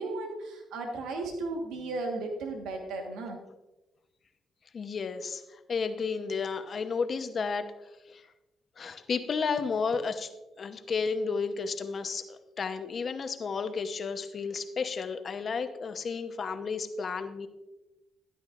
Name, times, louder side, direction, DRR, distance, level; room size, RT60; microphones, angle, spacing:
voice 1, 0.0-3.4, right 2 dB, 90° right, 2 dB, 1.4 m, -35 dB
voice 2, 4.7-5.4 5.7-7.7 8.1-8.2 8.8-10.3 10.6-17.5, left 5 dB, 45° left, 9 dB, 0.9 m, -32 dB
13.0 x 11.0 x 2.5 m, 1.0 s
cardioid pair, 90°, 0 cm